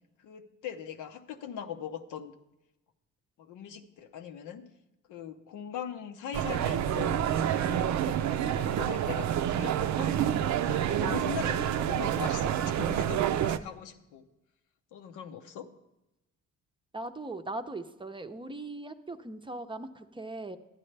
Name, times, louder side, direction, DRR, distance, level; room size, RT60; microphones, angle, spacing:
voice 1, 0.2-2.3 3.4-4.7 5.1-7.3 7.6-14.3 14.9-15.7, left 8 dB, 90° left, 6 dB, 0.8 m, -41 dB
sound 1, 6.3-13.6, right 10 dB, 70° right, 0.5 m, -28 dB
voice 2, 16.9-20.6, right 2 dB, 15° right, 7 dB, 0.6 m, -39 dB
12.5 x 9.8 x 3.3 m, 0.96 s
cardioid pair, 90°, 30 cm